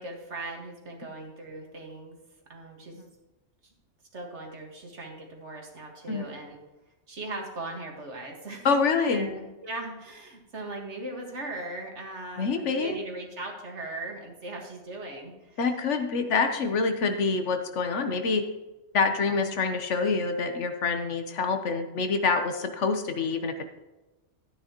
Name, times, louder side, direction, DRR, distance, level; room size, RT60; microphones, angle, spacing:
voice 1, 0.0-2.2 2.5-3.0 4.1-6.6 7.1-8.7 9.1-15.6, right 2 dB, 75° right, 1 dB, 2.1 m, -39 dB
voice 2, 8.6-9.3 12.4-13.0 15.6-18.4 18.9-23.7, left 4 dB, 80° left, 7 dB, 1.3 m, -26 dB
12.5 x 9.4 x 3.0 m, 1.1 s
omnidirectional pair, 1.2 m